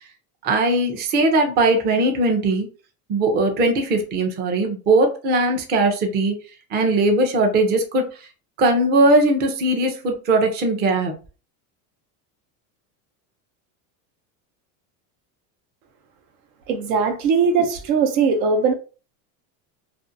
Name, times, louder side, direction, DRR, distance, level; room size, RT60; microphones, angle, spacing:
voice 1, 0.4-2.7 3.1-6.4 6.7-8.3 8.6-11.1, right 2 dB, 25° right, 0.4 m, -19 dB
voice 2, 16.7-18.7, right 5 dB, 80° right, 0.8 m, -20 dB
2.6 x 2.4 x 2.5 m
supercardioid pair, 130°, 47 cm